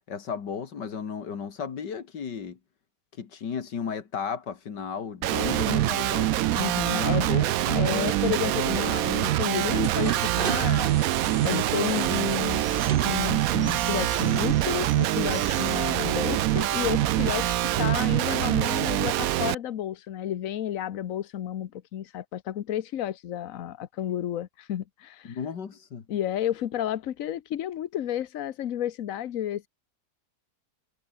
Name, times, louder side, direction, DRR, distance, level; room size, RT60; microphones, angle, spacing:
voice 1, 0.1-2.6 3.2-6.4 6.9-8.1 8.7-8.9 25.2-26.0, left 6 dB, 85° left, 2.6 m, -34 dB
Guitar, 5.2-19.5, right 15 dB, 70° right, 0.9 m, -25 dB
voice 2, 5.4-7.3 7.7-10.9 11.4-12.6 13.0-25.4 26.1-29.7, left 11 dB, 55° left, 1.2 m, -31 dB
sound 1, 5.4-16.1, right 7 dB, 40° right, 0.9 m, -38 dB
sound 2, 12.4-17.9, right 1 dB, 15° right, 2.4 m, -40 dB
omnidirectional pair, 1.8 m